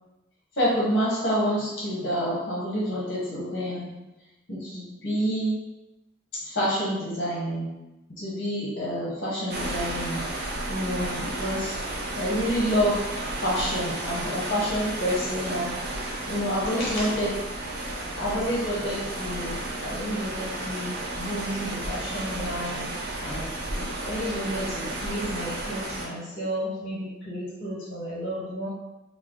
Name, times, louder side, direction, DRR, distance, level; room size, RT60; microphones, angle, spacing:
voice 1, 0.6-3.9 4.5-5.6 6.3-7.7 8.1-11.8 12.1-13.0 13.4-17.3 18.2-22.9 23.2-28.7, equal, 55° left, -7 dB, 1.0 m, -29 dB
sound 1, 9.5-26.1, right 1 dB, 55° right, 0.6 m, -33 dB
3.4 x 2.0 x 3.6 m, 1.0 s
head